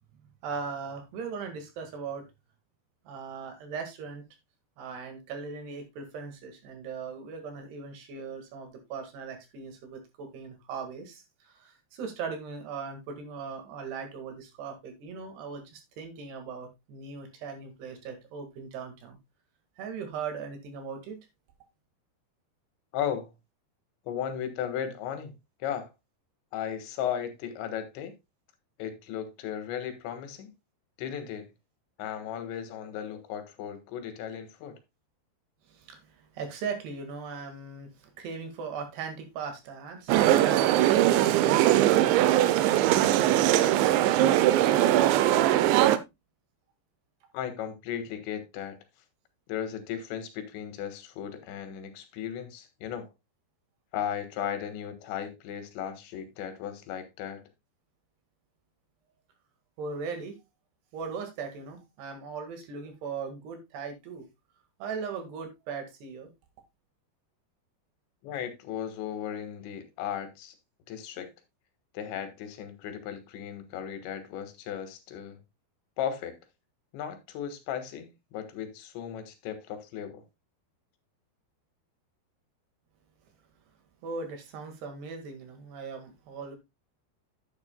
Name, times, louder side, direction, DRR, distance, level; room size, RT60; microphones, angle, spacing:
voice 1, 0.4-2.2 3.1-4.2 4.8-19.2 19.8-21.2 35.7-45.9 59.8-60.4 60.9-64.3 64.8-66.3 84.0-86.6, right 5 dB, 70° right, 3.8 m, -39 dB
voice 2, 22.9-23.3 24.1-25.3 25.6-25.9 26.5-28.1 28.8-30.5 31.0-31.5 32.0-34.8 47.3-48.8 49.5-53.1 53.9-57.4 68.2-70.6 70.9-71.3 72.0-75.4 76.0-76.4 76.9-80.2, left 9 dB, 85° left, 3.7 m, -36 dB
sound 1, 40.1-46.0, right 13 dB, 90° right, 3.0 m, -21 dB
10.5 x 9.6 x 2.2 m
omnidirectional pair, 5.1 m